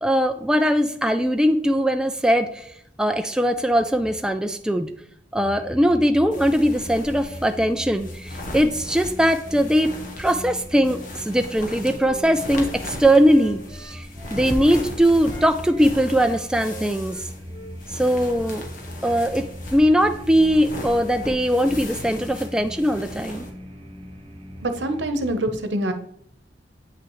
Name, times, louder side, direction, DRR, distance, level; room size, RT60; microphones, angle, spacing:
voice 1, 0.0-2.7 3.0-4.9 5.3-9.9 10.2-17.2 17.9-18.6 19.0-19.5 19.7-23.5, equal, 5° right, 6 dB, 0.3 m, -20 dB
sound 1, 5.4-25.3, equal, 35° right, 1.3 m, -39 dB
sound 2, 6.3-23.5, left 1 dB, 45° left, 1.3 m, -37 dB
Wind instrument woodwind instrument, 11.6-14.8 15.2-18.6, right 2 dB, 25° left, 1.2 m, -44 dB
voice 2, 24.6-25.9, right 1 dB, 80° right, 8 dB, 0.9 m, -25 dB
8.7 x 5.9 x 3.1 m, 0.69 s
head